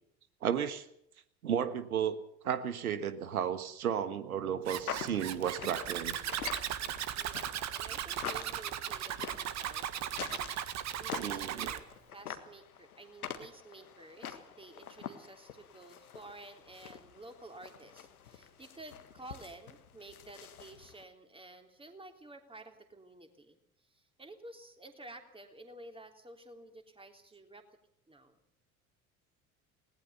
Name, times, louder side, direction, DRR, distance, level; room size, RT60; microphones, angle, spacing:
voice 1, 0.4-0.8 1.4-2.2 2.4-6.2 11.2-11.7, right 8 dB, 75° right, 13 dB, 1.5 m, -33 dB
Zipper (clothing), 4.6-11.8, right 10 dB, 40° right, 1.6 m, -37 dB
sound 1, 4.9-21.0, left 8 dB, 75° left, 1.7 m, -46 dB
voice 2, 7.1-10.4 10.7-27.6 28.1-28.4, right 2 dB, 10° right, 5 dB, 3.4 m, -52 dB
20.0 x 19.0 x 6.9 m, 0.72 s
figure-of-eight pair, 65°, 44 cm